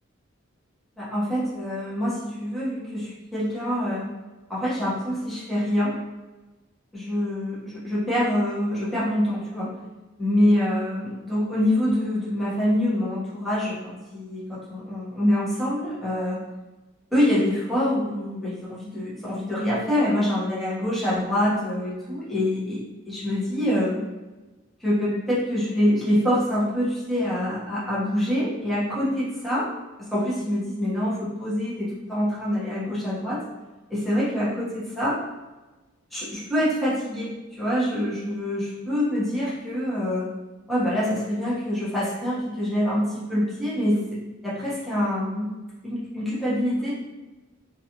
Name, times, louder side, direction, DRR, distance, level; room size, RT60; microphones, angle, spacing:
voice 1, 1.0-4.1 4.5-5.9 6.9-9.7 10.2-16.4 17.1-24.0 24.8-29.7 30.1-33.4 33.9-35.2 36.1-37.3 37.6-40.3 40.7-44.0 44.4-45.6 45.8-46.9, left 1 dB, ahead, -10 dB, 1.1 m, -25 dB
3.2 x 2.6 x 2.8 m, 1.2 s
head